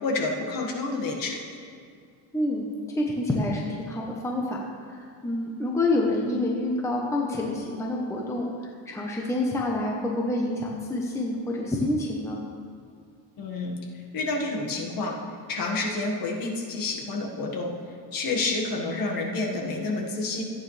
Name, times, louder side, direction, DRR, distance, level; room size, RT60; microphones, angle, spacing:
voice 1, 0.0-1.4 13.4-13.7 14.1-15.2 15.5-17.7 18.1-20.4, left 3 dB, 50° left, -1 dB, 1.8 m, -29 dB
voice 2, 2.3-2.7 2.9-12.4, left 2 dB, 5° left, -2 dB, 0.9 m, -28 dB
15.0 x 9.2 x 3.3 m, 2.2 s
cardioid pair, 150°, 45 cm